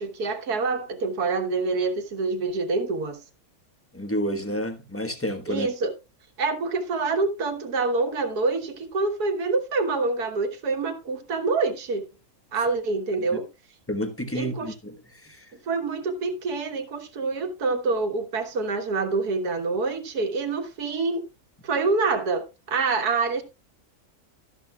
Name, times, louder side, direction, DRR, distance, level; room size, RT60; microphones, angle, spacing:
voice 1, 0.0-3.2 5.5-5.9 6.4-12.0 12.5-13.5 14.3-14.7 15.6-21.3 21.6-23.4, right 3 dB, 85° right, 1.9 m, -26 dB
voice 2, 3.9-5.7 13.9-15.5, equal, 10° left, 1.1 m, -30 dB
12.5 x 11.5 x 2.3 m
omnidirectional pair, 1.6 m